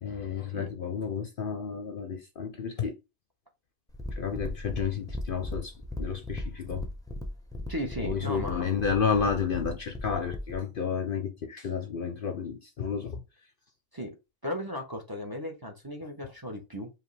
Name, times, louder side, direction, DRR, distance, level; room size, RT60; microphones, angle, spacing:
voice 1, 0.0-2.9 4.1-6.9 8.0-13.2, left 6 dB, 55° left, 0.7 m, -31 dB
sound 1, 3.9-10.6, left 1 dB, 5° left, 0.6 m, -37 dB
voice 2, 7.7-8.7 13.9-14.1 14.4-16.9, equal, 20° right, 0.9 m, -36 dB
4.9 x 2.8 x 3.2 m
omnidirectional pair, 1.3 m